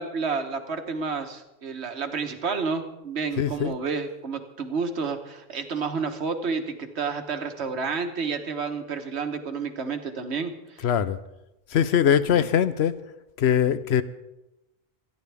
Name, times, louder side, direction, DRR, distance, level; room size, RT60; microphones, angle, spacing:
voice 1, 0.0-10.8 12.2-12.5, right 5 dB, 90° right, 1.5 m, -30 dB
voice 2, 3.3-3.8 10.8-11.2 11.7-13.0 13.4-14.0, left 9 dB, 80° left, 0.9 m, -22 dB
26.5 x 10.5 x 3.5 m
omnidirectional pair, 1.1 m